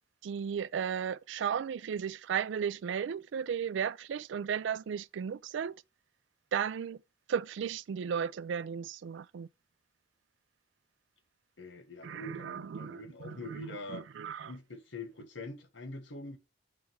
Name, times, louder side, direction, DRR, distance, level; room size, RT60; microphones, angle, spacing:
voice 1, 0.2-5.8 6.5-7.0 7.3-9.5 12.0-14.5, right 7 dB, 65° right, 0.3 m, -35 dB
voice 2, 11.6-14.1 14.5-16.4, left 2 dB, 75° left, 1.4 m, -44 dB
7.6 x 3.5 x 4.5 m
head